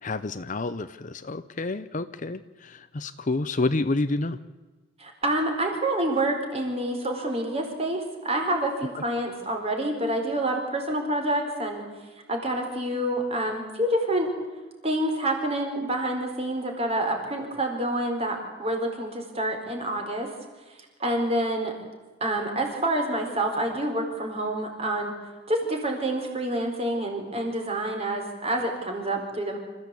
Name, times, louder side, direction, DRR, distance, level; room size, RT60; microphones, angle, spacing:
voice 1, 0.0-4.4, left 2 dB, 40° left, 13 dB, 0.7 m, -29 dB
voice 2, 5.0-11.9 12.3-14.3 14.8-20.3 20.7-21.8 22.2-25.1 25.5-29.6, right 1 dB, 30° right, 3 dB, 4.5 m, -27 dB
27.0 x 15.0 x 8.4 m, 1.3 s
head